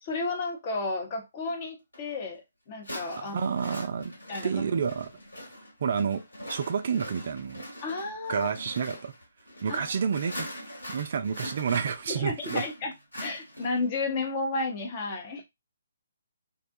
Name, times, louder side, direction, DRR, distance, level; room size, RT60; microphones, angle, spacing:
voice 1, 0.0-3.5 4.3-4.6 7.8-8.5 9.7-9.8 12.1-12.9 13.2-15.4, left 3 dB, 35° left, 0.8 m, -32 dB
sound 1, 1.9-2.0 2.8-13.9, equal, 80° left, 1.7 m, -42 dB
voice 2, 3.2-4.1 4.4-5.1 5.8-7.6 8.3-9.1 9.6-10.5 10.9-12.6, right 6 dB, 50° right, 0.3 m, -29 dB
2.6 x 2.2 x 2.6 m
figure-of-eight pair, 140°, 0 cm